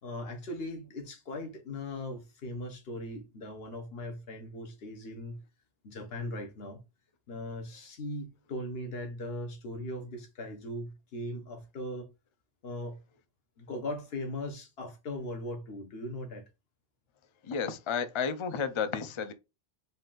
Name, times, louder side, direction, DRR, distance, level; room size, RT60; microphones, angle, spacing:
voice 1, 0.0-5.4 5.8-6.8 7.3-12.1 12.6-13.0 13.6-16.4, left 1 dB, 70° left, 1.1 m, -39 dB
voice 2, 17.4-19.3, left 6 dB, 45° left, 0.4 m, -32 dB
4.0 x 2.5 x 3.7 m
omnidirectional pair, 1.1 m